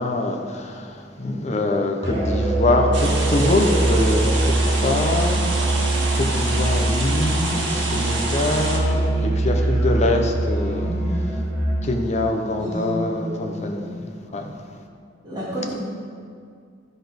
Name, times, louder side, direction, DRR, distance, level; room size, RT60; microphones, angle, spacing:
voice 1, 0.0-10.9 11.8-14.0 14.3-14.5, left 2 dB, 40° left, 2 dB, 0.8 m, -24 dB
Musical instrument, 2.0-11.9, right 2 dB, 65° right, 2.4 m, -23 dB
sound 1, 2.9-8.8, right 2 dB, 85° right, 1.6 m, -27 dB
voice 2, 10.8-11.2 12.6-13.9 14.3-14.4 15.2-15.8, left 1 dB, 25° right, -10 dB, 2.4 m, -31 dB
12.5 x 4.2 x 5.2 m, 2.2 s
head